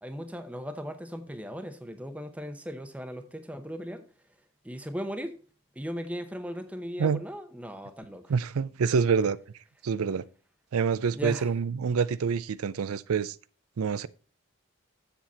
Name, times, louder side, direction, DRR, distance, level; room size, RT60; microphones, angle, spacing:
voice 1, 0.0-4.0 4.6-5.4 5.8-8.3 11.1-11.5, equal, 5° right, 0.7 m, -37 dB
voice 2, 8.3-9.4 9.8-10.2 10.7-13.3 13.8-14.1, right 6 dB, 90° right, 0.4 m, -26 dB
7.6 x 7.3 x 4.1 m
head